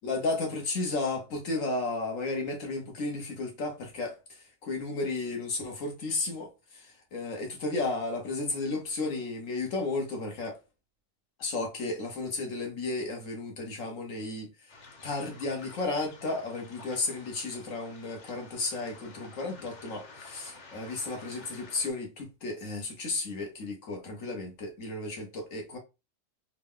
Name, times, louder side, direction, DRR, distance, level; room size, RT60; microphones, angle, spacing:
voice 1, 0.0-10.6 11.4-14.7 15.0-25.8, left 3 dB, 80° left, 1.5 m, -33 dB
Waves surf, 14.7-21.9, left 3 dB, 40° left, 0.8 m, -51 dB
3.7 x 2.3 x 3.6 m
omnidirectional pair, 1.3 m